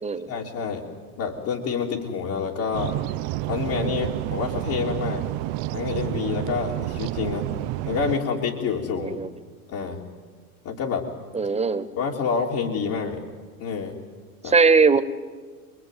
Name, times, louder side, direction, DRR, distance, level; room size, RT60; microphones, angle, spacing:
voice 1, 0.3-0.8 1.2-2.9 3.5-5.2 5.7-7.5 7.9-9.2 9.7-10.0 10.6-11.1 12.0-13.2 13.6-14.0 14.4-14.5, left 6 dB, 55° left, -2 dB, 3.5 m, -27 dB
sound 1, 2.7-8.2, right 16 dB, 55° right, 0.8 m, -29 dB
voice 2, 9.0-9.3 11.3-11.9 14.4-15.0, right 4 dB, 15° right, 9 dB, 1.7 m, -19 dB
27.0 x 22.5 x 9.4 m, 1.5 s
hypercardioid pair, 95°, 44 cm